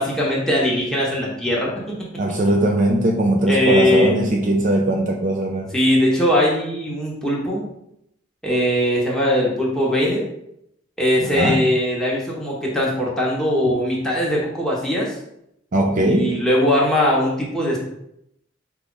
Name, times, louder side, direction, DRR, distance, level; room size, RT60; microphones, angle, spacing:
voice 1, 0.0-1.9 3.5-4.3 5.7-7.7 8.4-10.3 11.0-15.1 16.0-17.8, left 1 dB, 5° left, -5 dB, 1.0 m, -20 dB
voice 2, 2.2-5.7 11.2-11.6 15.7-16.4, right 1 dB, 40° right, 0 dB, 0.5 m, -20 dB
4.9 x 2.4 x 3.9 m, 0.78 s
head